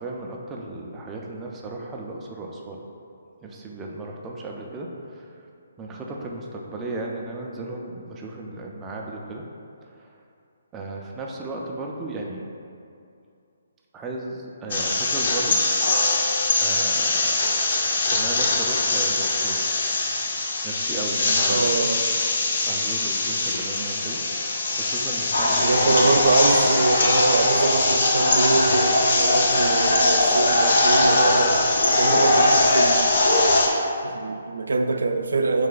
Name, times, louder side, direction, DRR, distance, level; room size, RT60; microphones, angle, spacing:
voice 1, 0.0-2.8 3.4-5.3 5.8-9.4 9.8-10.2 10.7-12.4 13.9-15.6 16.6-17.4 18.1-19.7 20.6-21.8 22.6-24.2 24.7-26.2, right 2 dB, 10° right, -1 dB, 0.3 m, -35 dB
sound 1, 14.7-33.7, left 2 dB, 50° left, 0.5 m, -23 dB
voice 2, 21.5-22.1 25.6-31.6 31.9-33.3 34.0-35.7, right 3 dB, 90° right, 6 dB, 0.3 m, -24 dB
sound 2, 25.3-33.6, left 1 dB, 90° left, 0.7 m, -21 dB
3.6 x 3.2 x 3.8 m, 2.5 s
hypercardioid pair, 170°, 0 cm